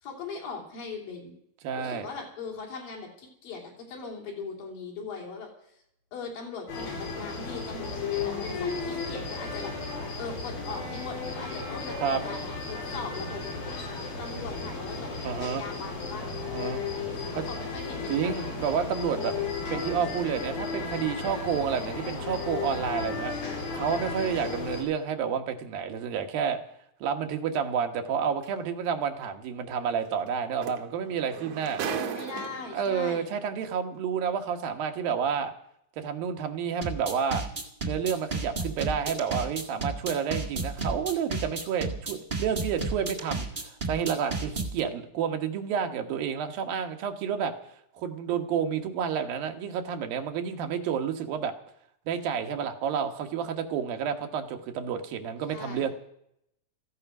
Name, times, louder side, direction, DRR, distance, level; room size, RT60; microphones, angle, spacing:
voice 1, 0.0-1.4 1.8-5.5 6.1-9.7 10.2-13.4 14.2-15.1 15.4-16.3 17.1-18.7 31.8-33.3 55.5-55.9, left 4 dB, 70° left, -1 dB, 5.1 m, -40 dB
voice 2, 1.6-2.1 12.0-12.2 15.2-15.6 16.4-16.8 17.4-17.5 18.1-19.3 19.7-23.3 23.7-26.6 27.0-31.8 32.7-35.5 36.0-37.4 37.8-47.5 47.9-51.5 52.1-55.9, right 7 dB, 80° right, 5 dB, 3.0 m, -30 dB
sound 1, 6.7-24.8, left 4 dB, 85° left, 5.9 m, -34 dB
sound 2, 28.4-28.6 30.3-30.4 30.6-32.9 33.8-33.9, right 7 dB, 60° right, 2.0 m, -35 dB
sound 3, 36.8-44.8, right 3 dB, 30° right, 0.9 m, -32 dB
15.0 x 15.0 x 6.0 m, 0.74 s
omnidirectional pair, 4.1 m